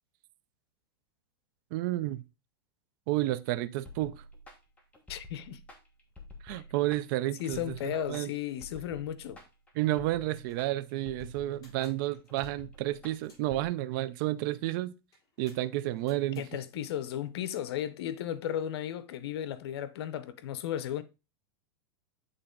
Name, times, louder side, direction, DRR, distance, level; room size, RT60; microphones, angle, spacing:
voice 1, 1.7-2.2 3.1-4.2 6.4-8.3 9.8-14.9 15.4-16.4, right 15 dB, 55° right, 0.5 m, -31 dB
sound 1, 3.9-13.7, left 2 dB, 10° left, 1.4 m, -50 dB
voice 2, 5.1-5.6 6.5-6.6 7.4-9.4 16.4-21.0, left 11 dB, 75° left, 0.7 m, -35 dB
sound 2, 9.9-10.0 10.3-13.6 15.1-16.5 17.7-17.9, left 2 dB, 25° left, 3.7 m, -62 dB
7.9 x 3.8 x 3.8 m
supercardioid pair, 140°, 13 cm